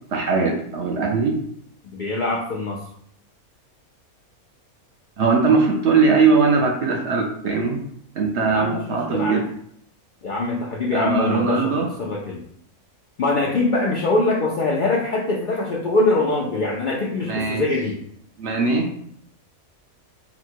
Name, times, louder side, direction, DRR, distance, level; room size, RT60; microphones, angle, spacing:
voice 1, 0.1-1.3 5.2-7.8 8.2-9.5 10.9-11.9 17.2-17.6 18.4-18.9, right 4 dB, 60° right, 1 dB, 0.8 m, -20 dB
voice 2, 1.9-2.8 8.5-9.4 10.2-11.7 12.0-12.4 13.2-18.0, left 2 dB, 65° left, -3 dB, 0.4 m, -23 dB
4.1 x 2.1 x 4.4 m, 0.68 s
omnidirectional pair, 1.5 m